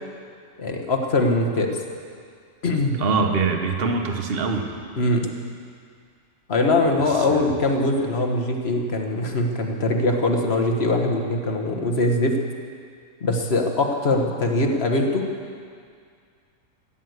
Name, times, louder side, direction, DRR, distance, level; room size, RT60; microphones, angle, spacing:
voice 1, 0.6-1.8 2.6-3.0 5.0-5.3 6.5-12.3 13.2-15.3, left 2 dB, 45° left, 3 dB, 1.6 m, -22 dB
voice 2, 3.0-4.7 7.3-7.4, right 4 dB, 45° right, 4 dB, 1.3 m, -23 dB
15.5 x 10.0 x 8.0 m, 2.2 s
omnidirectional pair, 1.5 m